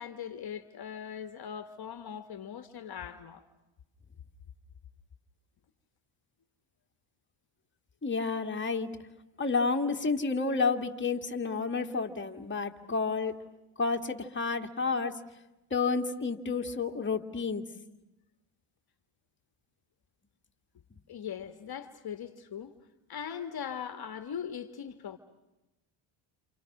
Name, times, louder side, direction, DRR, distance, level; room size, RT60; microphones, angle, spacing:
voice 1, 0.0-3.4 21.1-22.7 23.1-25.2, left 8 dB, 50° left, 9 dB, 1.6 m, -40 dB
voice 2, 8.0-8.9 9.4-13.3 13.8-15.2 15.7-17.6, left 4 dB, 25° left, 3 dB, 2.1 m, -30 dB
28.5 x 28.0 x 6.0 m, 0.98 s
cardioid pair, 85°, 49 cm